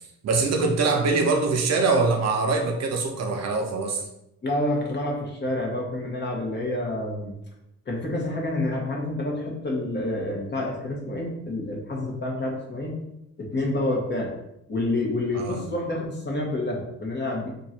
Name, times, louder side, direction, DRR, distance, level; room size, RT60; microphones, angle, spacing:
voice 1, 0.2-4.0 15.3-15.6, right 3 dB, 60° right, 3 dB, 0.7 m, -23 dB
voice 2, 4.4-7.3 7.9-12.9 13.4-14.3 14.7-17.5, left 1 dB, 35° left, -1 dB, 1.2 m, -28 dB
2.9 x 2.6 x 4.3 m, 0.82 s
cardioid pair, 90°, 30 cm